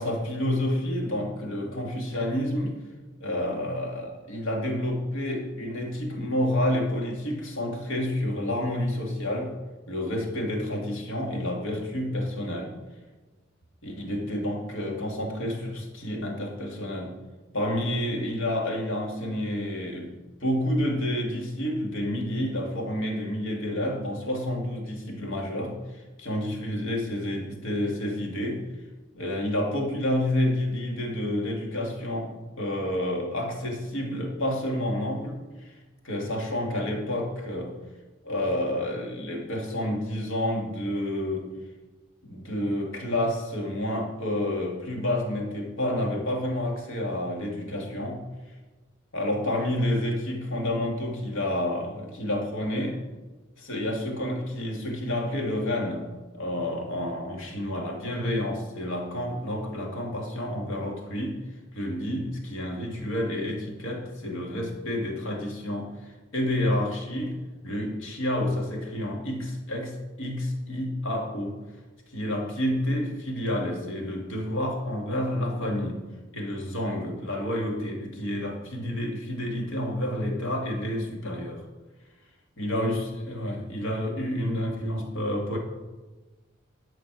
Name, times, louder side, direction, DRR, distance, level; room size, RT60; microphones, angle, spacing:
voice 1, 0.0-2.8 3.2-12.7 13.8-17.2 17.5-28.7 29.1-35.4 36.0-37.8 38.2-41.5 42.2-48.3 49.1-53.0 53.6-56.1 56.3-61.4 61.7-71.6 72.1-76.0 76.3-81.6 82.6-85.6, left 1 dB, 85° left, 0 dB, 2.4 m, -29 dB
11.5 x 6.0 x 6.2 m, 1.2 s
head